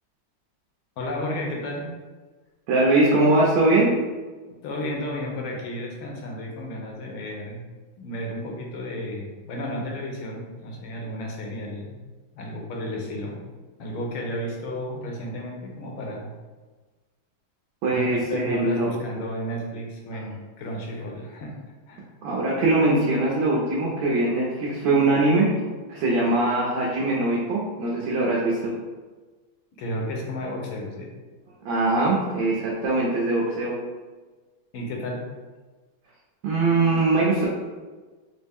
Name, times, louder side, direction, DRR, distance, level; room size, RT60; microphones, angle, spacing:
voice 1, 1.0-1.9 4.6-7.6 8.0-12.0 12.3-13.4 13.8-16.3 17.9-21.6 21.9-22.1 29.7-31.1 34.7-35.2, left 1 dB, 85° left, 0 dB, 1.6 m, -32 dB
voice 2, 2.7-3.9 17.8-18.9 22.2-25.5 25.9-28.7 31.6-33.8 36.4-37.5, right 2 dB, 70° right, -4 dB, 1.3 m, -22 dB
4.3 x 2.0 x 3.5 m, 1.3 s
omnidirectional pair, 2.2 m